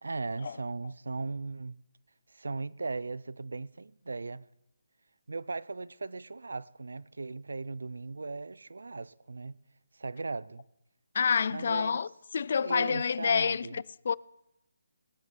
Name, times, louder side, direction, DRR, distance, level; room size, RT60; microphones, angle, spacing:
voice 1, 0.0-1.8 2.3-4.4 5.3-9.6 9.9-10.6 11.5-12.1 12.6-13.8, right 3 dB, 80° right, 0.6 m, -38 dB
voice 2, 11.1-12.1 12.3-14.1, left 6 dB, 55° left, 0.4 m, -28 dB
17.5 x 11.0 x 5.9 m
figure-of-eight pair, 155°, 0 cm